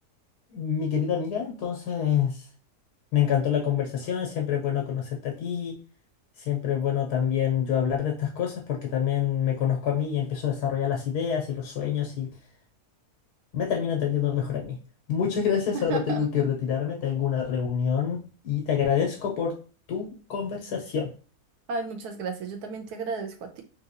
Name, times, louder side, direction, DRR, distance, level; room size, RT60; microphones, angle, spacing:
voice 1, 0.5-2.5 3.1-5.8 6.5-12.3 13.5-14.8 15.1-19.6 19.9-21.1, left 8 dB, 80° left, 1.3 m, -27 dB
voice 2, 15.7-16.2 21.7-23.6, right 4 dB, 80° right, 1.3 m, -33 dB
3.7 x 2.6 x 2.7 m
omnidirectional pair, 1.7 m